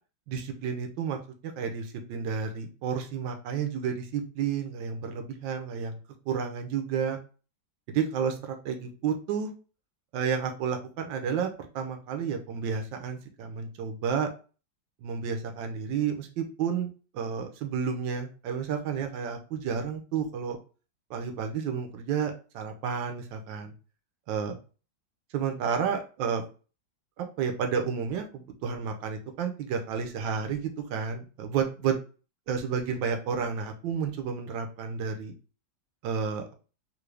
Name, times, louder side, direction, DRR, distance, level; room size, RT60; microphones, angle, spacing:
voice 1, 0.3-1.2 1.6-6.0 6.3-7.2 7.9-9.5 10.1-11.5 11.7-14.3 15.0-20.6 21.1-23.7 24.3-24.6 25.3-26.4 27.2-32.0 32.5-35.3 36.0-36.5, right 6 dB, 75° right, 5 dB, 1.4 m, -31 dB
3.8 x 2.7 x 3.2 m, 0.35 s
omnidirectional pair, 2.1 m